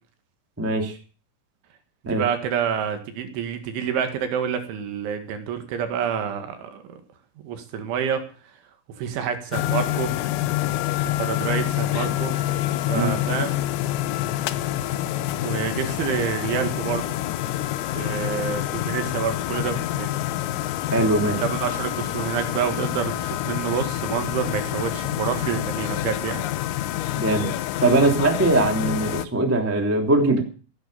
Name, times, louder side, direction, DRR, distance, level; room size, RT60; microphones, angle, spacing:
voice 1, 0.6-0.9 2.0-2.2 12.9-13.1 20.9-21.4 27.1-27.5 27.8-30.4, right 2 dB, 5° right, 4 dB, 1.3 m, -21 dB
voice 2, 2.0-7.0 7.4-8.2 9.0-10.1 11.0-13.6 15.4-17.2 18.0-20.2 21.4-26.5, right 7 dB, 70° right, 7 dB, 4.2 m, -28 dB
sound 1, 9.5-29.3, left 14 dB, 85° left, 3.6 m, -27 dB
16.0 x 11.0 x 6.8 m, 0.39 s
omnidirectional pair, 5.8 m